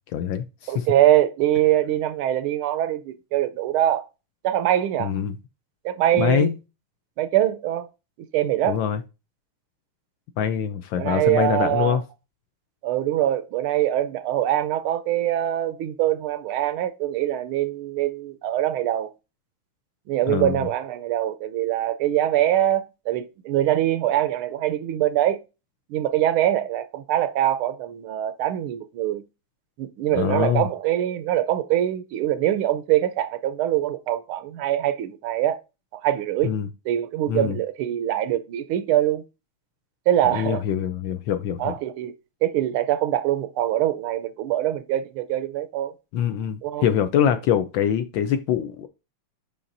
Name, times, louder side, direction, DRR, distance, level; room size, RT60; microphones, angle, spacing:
voice 1, 0.1-0.9 5.0-5.3 6.1-6.6 8.7-9.0 10.4-12.0 20.3-20.6 30.1-30.7 36.4-36.7 37.3-37.6 40.3-41.7 46.1-48.9, left 9 dB, 75° left, 1.2 m, -24 dB
voice 2, 0.7-4.1 4.4-5.1 5.8-6.5 7.2-7.9 8.2-8.8 11.0-12.0 12.8-19.1 20.1-25.4 25.9-29.2 29.8-35.6 35.9-36.5 36.8-39.2 40.1-40.6 41.6-42.1 42.4-45.9 46.6-46.9, right 12 dB, 80° right, 1.4 m, -23 dB
6.9 x 5.6 x 2.6 m
omnidirectional pair, 2.4 m